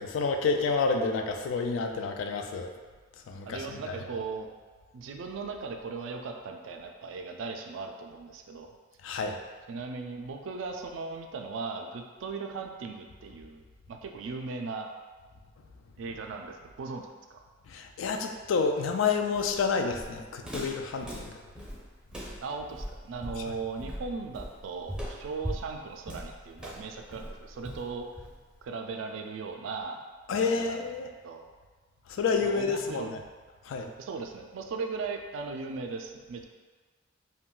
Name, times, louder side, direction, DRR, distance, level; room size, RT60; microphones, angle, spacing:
voice 1, 0.0-2.7 3.3-4.0 9.0-9.4 17.7-21.3 23.4-23.5 30.3-31.1 32.1-33.2 33.6-33.9, left 4 dB, 85° left, 4 dB, 0.3 m, -29 dB
voice 2, 3.5-4.5 4.9-8.8 9.7-14.9 16.0-17.4 22.4-28.1 28.6-30.0 30.3-30.8 31.2-31.4 32.4-33.1 34.0-36.4, right 4 dB, 85° right, 3 dB, 0.3 m, -38 dB
Walk footsteps, 19.3-28.6, equal, 5° right, 0.5 m, -40 dB
2.3 x 2.2 x 3.7 m, 1.4 s
head